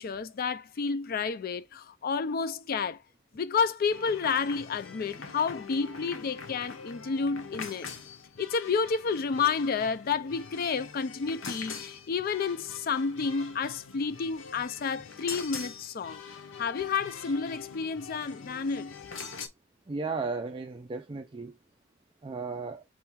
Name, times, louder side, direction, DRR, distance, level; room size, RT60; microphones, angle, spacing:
voice 1, 0.0-3.0 3.3-7.9 8.4-16.2 16.6-18.9, left 5 dB, 50° left, 0.4 m, -30 dB
sound 1, 3.9-19.5, left 5 dB, 90° left, 0.8 m, -44 dB
voice 2, 19.9-21.6 22.2-22.8, right 4 dB, 25° right, 0.4 m, -35 dB
4.3 x 2.4 x 4.4 m
head